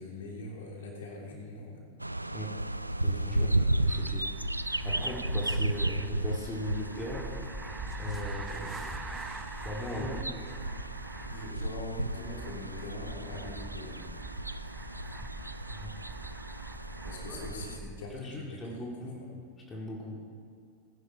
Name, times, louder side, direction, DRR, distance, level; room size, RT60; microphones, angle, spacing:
voice 1, 0.0-1.8 3.3-3.7 5.0-5.1 9.9-10.3 11.3-14.0 17.0-19.3, left 2 dB, 60° left, -1 dB, 3.0 m, -42 dB
sound 1, 2.0-17.8, right 1 dB, 85° right, 0.3 m, -34 dB
voice 2, 3.0-3.5 3.8-4.3 4.8-7.3 8.0-9.0 9.6-10.1 15.7-16.0 17.3-17.4 18.1-19.2 19.7-20.3, left 1 dB, 20° left, -2 dB, 2.1 m, -39 dB
sound 2, 3.8-18.2, right 3 dB, 10° right, 0.7 m, -43 dB
19.5 x 10.5 x 4.4 m, 2.4 s
figure-of-eight pair, 90°, 0 cm